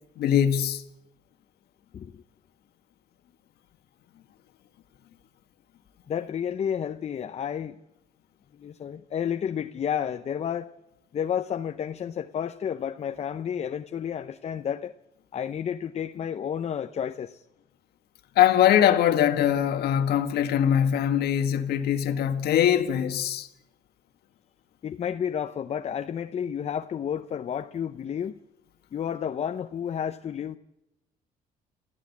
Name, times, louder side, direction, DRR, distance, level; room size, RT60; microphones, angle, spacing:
voice 1, 0.2-0.8 18.3-23.5, left 10 dB, 70° left, 1.7 m, -22 dB
voice 2, 6.1-7.8 8.5-10.7 11.1-14.9 15.3-17.4 24.8-28.4 28.9-30.6, left 8 dB, 40° left, 0.8 m, -31 dB
28.0 x 14.0 x 8.4 m
cardioid pair, 110°, 17 cm